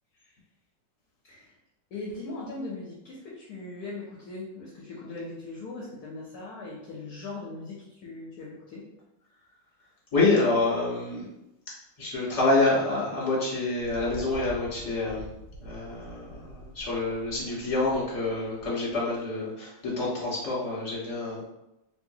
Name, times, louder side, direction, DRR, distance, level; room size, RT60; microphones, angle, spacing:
voice 1, 1.2-1.6 1.9-8.9, left 2 dB, 65° left, -4 dB, 1.0 m, -39 dB
voice 2, 10.1-11.2 12.0-15.3 15.6-21.5, left 2 dB, 20° left, -8 dB, 1.2 m, -27 dB
Thunder, 13.8-19.3, right 1 dB, 70° right, 1.0 m, -45 dB
3.0 x 3.0 x 2.7 m, 0.90 s
omnidirectional pair, 2.0 m